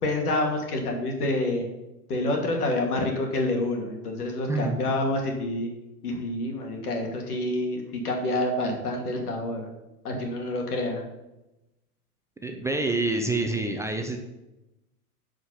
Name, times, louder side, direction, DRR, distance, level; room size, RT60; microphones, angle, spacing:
voice 1, 0.0-1.7 2.1-5.7 6.0-9.7 10.0-11.0, left 2 dB, 75° left, 2 dB, 2.5 m, -28 dB
voice 2, 4.5-4.8 12.4-14.2, right 2 dB, 5° right, 3 dB, 0.6 m, -27 dB
9.6 x 5.1 x 5.7 m, 0.98 s
hypercardioid pair, 100°, 46 cm